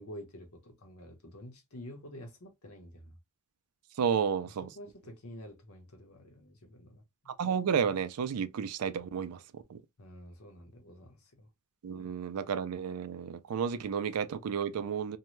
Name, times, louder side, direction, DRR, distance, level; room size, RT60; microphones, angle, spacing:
voice 1, 0.0-3.1 4.6-7.3 10.0-11.5, equal, 70° left, 0.9 m, -49 dB
voice 2, 4.0-4.7 7.3-9.8 11.8-15.2, right 7 dB, 80° right, 0.4 m, -32 dB
2.7 x 2.1 x 3.0 m
head